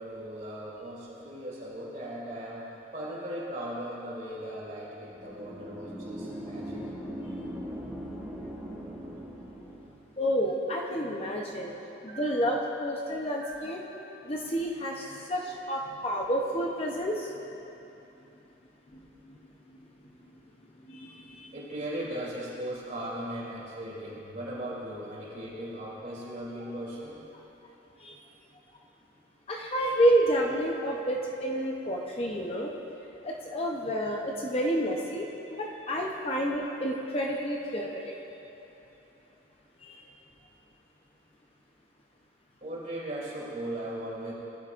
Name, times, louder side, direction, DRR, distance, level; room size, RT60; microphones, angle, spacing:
voice 1, 0.0-7.0 12.1-12.5 13.1-14.2 14.8-15.5 21.3-27.2 31.9-32.0 42.6-44.3, right 1 dB, 40° right, -6 dB, 3.0 m, -38 dB
sound 1, 5.1-10.1, equal, ahead, 1.1 m, -40 dB
voice 2, 10.2-11.7 12.0-13.8 14.2-17.3 18.9-19.0 19.3-19.4 20.9-21.5 28.0-28.2 29.5-32.7 33.2-38.1 39.8-40.0, equal, 30° left, -1 dB, 0.7 m, -29 dB
19.5 x 11.5 x 2.5 m, 3.0 s
head